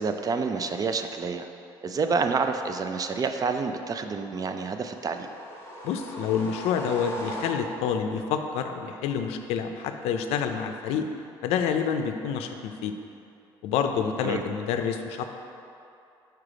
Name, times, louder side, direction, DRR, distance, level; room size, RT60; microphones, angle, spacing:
voice 1, 0.0-1.5 1.8-5.3 14.2-14.4, right 4 dB, 35° right, 7 dB, 0.4 m, -28 dB
sound 1, 4.8-8.0, equal, 25° left, 1.2 m, -38 dB
voice 2, 5.8-11.1 11.4-12.9 13.6-15.3, left 7 dB, 80° left, 6 dB, 0.4 m, -28 dB
4.9 x 4.6 x 4.9 m, 2.7 s
supercardioid pair, 80°, 10 cm